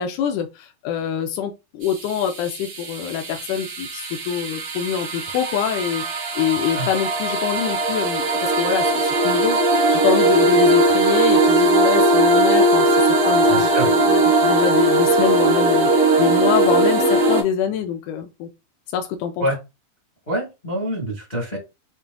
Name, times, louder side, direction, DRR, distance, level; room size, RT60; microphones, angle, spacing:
voice 1, 0.0-18.5 18.9-19.5, left 8 dB, 90° left, 1.7 m, -25 dB
sound 1, 1.8-17.4, right 1 dB, 70° right, 1.3 m, -19 dB
voice 2, 13.5-13.9 19.4-19.6 20.3-21.6, equal, 60° left, 0.4 m, -25 dB
6.8 x 2.5 x 2.3 m
omnidirectional pair, 4.2 m